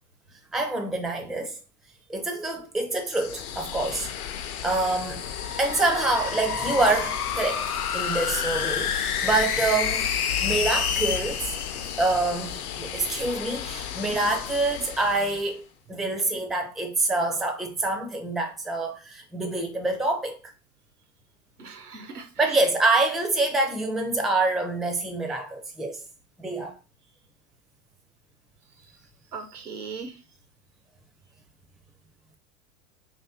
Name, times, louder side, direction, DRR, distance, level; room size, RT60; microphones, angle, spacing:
voice 1, 0.5-1.6 2.1-5.3 5.6-10.1 10.4-11.5 12.0-15.6 15.9-20.4 22.4-26.0 26.4-26.8, right 2 dB, ahead, 0.4 m, -26 dB
sound 1, 3.0-15.7, left 9 dB, 50° left, 0.6 m, -36 dB
sound 2, 5.2-12.7, left 7 dB, 85° left, 0.6 m, -29 dB
voice 2, 21.6-22.6 28.8-28.9 29.3-30.2, right 5 dB, 85° right, 0.9 m, -39 dB
3.1 x 2.8 x 4.0 m
hypercardioid pair, 90°, 44 cm